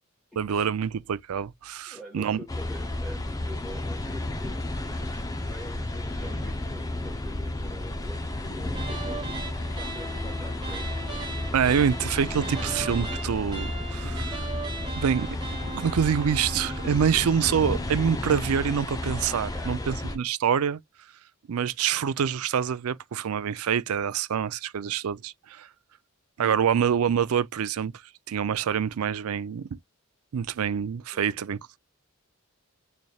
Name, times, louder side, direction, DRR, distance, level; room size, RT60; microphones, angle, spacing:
voice 1, 0.4-2.4 11.5-14.4 15.0-15.3 15.7-20.8 21.5-25.7 26.4-27.9 28.3-29.7 30.3-31.8, right 7 dB, 90° right, 0.4 m, -26 dB
voice 2, 1.9-4.7 5.5-9.3 9.7-11.1 19.5-20.0 31.1-31.5, left 1 dB, ahead, 1.4 m, -45 dB
sound 1, 2.5-20.2, left 1 dB, 15° left, 0.6 m, -32 dB
sound 2, 8.7-17.0, right 3 dB, 20° right, 1.2 m, -38 dB
4.1 x 3.3 x 2.3 m
head